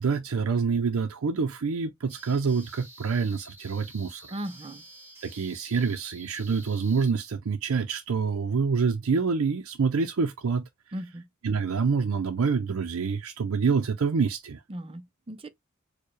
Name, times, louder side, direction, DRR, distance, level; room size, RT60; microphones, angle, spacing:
voice 1, 0.0-4.3 5.2-10.7 11.4-14.6, right 5 dB, 75° right, 0.5 m, -26 dB
sound 1, 2.1-7.1, right 1 dB, 10° right, 0.9 m, -49 dB
voice 2, 4.3-4.8 10.9-11.2 14.7-15.5, right 1 dB, 25° right, 0.5 m, -37 dB
4.6 x 2.2 x 3.1 m
head